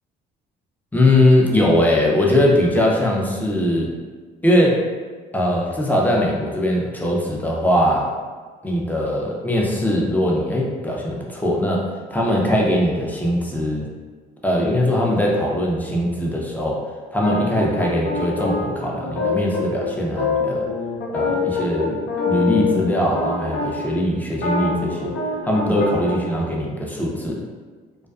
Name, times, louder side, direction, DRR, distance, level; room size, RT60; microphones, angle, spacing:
voice 1, 0.9-3.9 4.4-4.8 5.3-8.1 8.6-13.9 14.4-16.8 17.1-20.7 21.1-22.0 22.3-25.1 25.4-27.4, left 1 dB, 10° left, -2 dB, 0.5 m, -20 dB
sound 1, 17.2-23.9 24.3-26.1, left 4 dB, 65° left, 0.8 m, -25 dB
2.3 x 2.2 x 2.4 m, 1.4 s
supercardioid pair, 70°, 21 cm